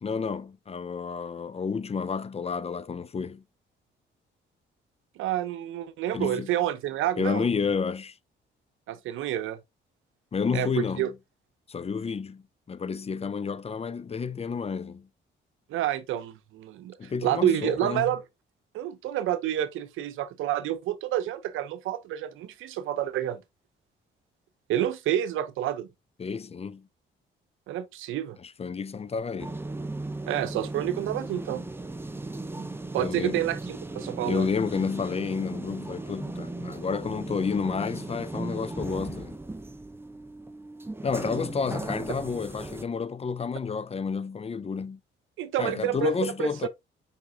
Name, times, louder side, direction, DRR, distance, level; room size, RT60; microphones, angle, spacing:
voice 1, 0.0-3.4 6.1-6.5 7.2-8.1 10.3-11.1 11.7-12.4 12.7-15.1 17.0-18.1 26.2-26.9 28.4-29.6 33.0-33.5 34.2-39.4 41.0-45.0 45.6-46.7, left 5 dB, 30° left, 0.6 m, -30 dB
voice 2, 5.2-7.5 8.9-9.6 10.5-11.1 15.7-18.2 18.7-23.4 24.7-25.9 27.7-28.4 30.3-31.6 32.6-32.7 32.9-34.5 45.4-46.7, right 11 dB, 85° right, 0.9 m, -29 dB
sound 1, 29.4-42.8, right 2 dB, 10° right, 1.0 m, -37 dB
5.6 x 5.1 x 3.7 m
cardioid pair, 90°, 20 cm